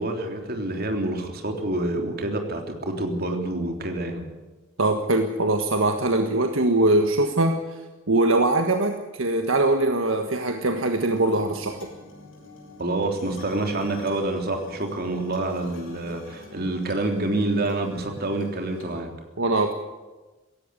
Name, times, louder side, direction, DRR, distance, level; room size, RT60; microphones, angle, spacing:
voice 1, 0.0-4.2 12.8-19.1, right 2 dB, 50° right, 4 dB, 3.5 m, -27 dB
voice 2, 4.8-7.8 8.1-11.9 19.4-19.8, right 2 dB, 70° right, 5 dB, 1.5 m, -22 dB
sound 1, 11.0-19.0, left 1 dB, 65° left, 7.7 m, -46 dB
17.0 x 16.5 x 9.8 m, 1.2 s
head